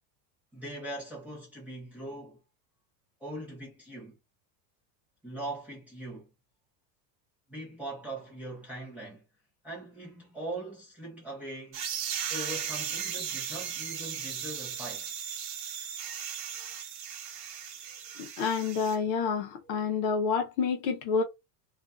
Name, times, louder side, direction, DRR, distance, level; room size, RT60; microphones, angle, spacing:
voice 1, 0.5-2.4 3.2-4.2 5.2-6.3 7.5-9.2 9.6-11.8 12.3-15.1, right 1 dB, 5° right, 0.6 m, -41 dB
sound 1, 11.7-18.9, right 8 dB, 50° right, 0.7 m, -36 dB
voice 2, 18.2-21.2, left 5 dB, 45° left, 0.6 m, -28 dB
2.5 x 2.3 x 2.3 m
supercardioid pair, 175°, 48 cm